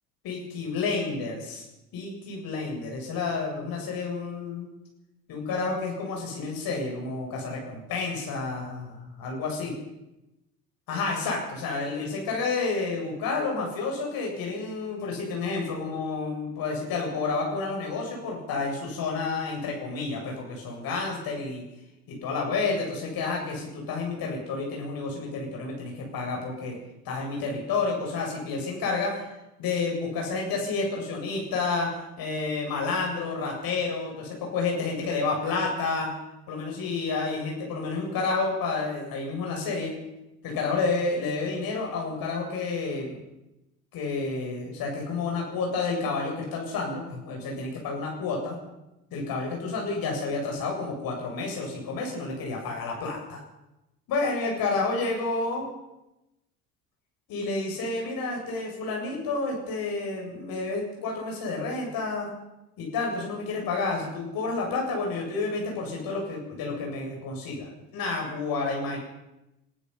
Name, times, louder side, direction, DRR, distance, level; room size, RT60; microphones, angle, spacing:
voice 1, 0.2-1.6 1.9-4.7 5.3-9.7 10.9-21.6 22.1-26.8 27.0-29.3 29.6-36.1 36.5-39.9 40.4-43.2 43.9-48.6 49.1-53.4 54.1-55.7 57.3-62.3 62.8-69.0, left 3 dB, 50° left, -1 dB, 7.8 m, -30 dB
27.5 x 16.0 x 5.9 m, 0.93 s
figure-of-eight pair, 75°, 46 cm